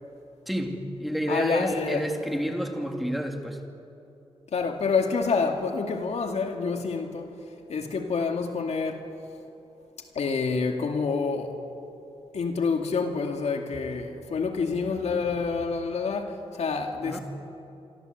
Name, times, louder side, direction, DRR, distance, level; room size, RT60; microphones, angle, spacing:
voice 1, 0.5-3.6 17.0-17.2, equal, ahead, 2.8 m, -29 dB
voice 2, 1.3-2.0 4.5-7.4 7.7-9.1 10.1-11.6 12.3-17.2, left 4 dB, 80° left, 2.4 m, -28 dB
26.5 x 25.0 x 8.1 m
wide cardioid pair, 105°, 11 cm